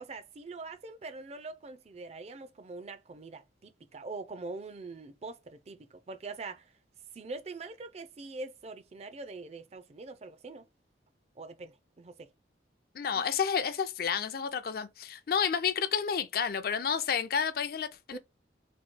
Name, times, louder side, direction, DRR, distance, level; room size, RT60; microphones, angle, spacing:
voice 1, 0.0-6.7 7.1-10.7 11.4-12.3 18.1-18.2, right 3 dB, 35° right, 0.4 m, -43 dB
voice 2, 12.9-18.2, left 7 dB, 55° left, 0.4 m, -30 dB
3.0 x 2.7 x 4.3 m
head